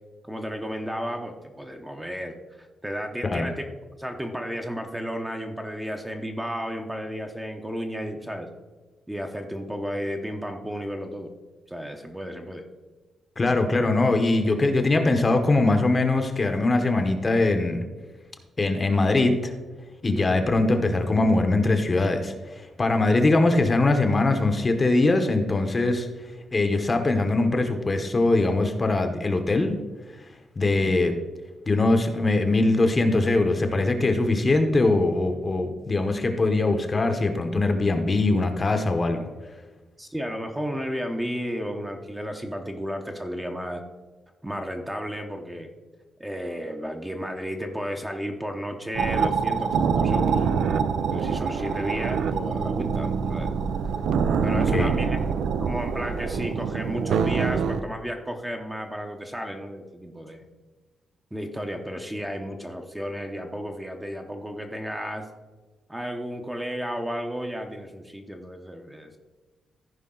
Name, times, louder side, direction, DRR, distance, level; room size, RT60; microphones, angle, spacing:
voice 1, 0.2-3.6 4.0-8.5 9.1-11.3 11.7-12.6 20.1-20.3 30.7-30.9 40.0-43.8 44.4-45.7 46.2-50.5 51.1-53.5 54.4-55.2 55.6-60.5 61.3-65.3 65.9-69.2, equal, 5° right, 3 dB, 0.8 m, -33 dB
voice 2, 13.4-17.8 18.6-19.5 20.0-26.1 26.5-29.8 30.6-31.1 31.7-39.2 54.5-54.9, left 2 dB, 25° left, 6 dB, 0.9 m, -22 dB
sound 1, 48.9-57.8, right 6 dB, 80° right, 0.5 m, -25 dB
14.5 x 5.2 x 3.8 m, 1.3 s
wide cardioid pair, 140°, 0 cm